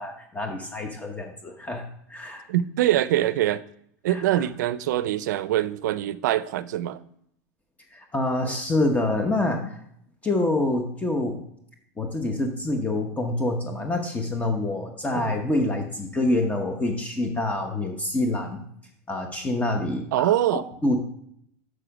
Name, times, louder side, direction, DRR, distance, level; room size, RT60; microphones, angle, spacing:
voice 1, 0.0-2.4 4.1-4.4 7.9-9.8 10.2-11.4 12.0-18.6 19.1-20.3 20.8-21.0, left 2 dB, 15° left, 1.0 m, -26 dB
voice 2, 2.5-3.6 4.0-7.0 15.1-15.3 20.1-20.6, right 13 dB, 80° right, 0.4 m, -24 dB
6.7 x 6.4 x 5.0 m
supercardioid pair, 120°, 9 cm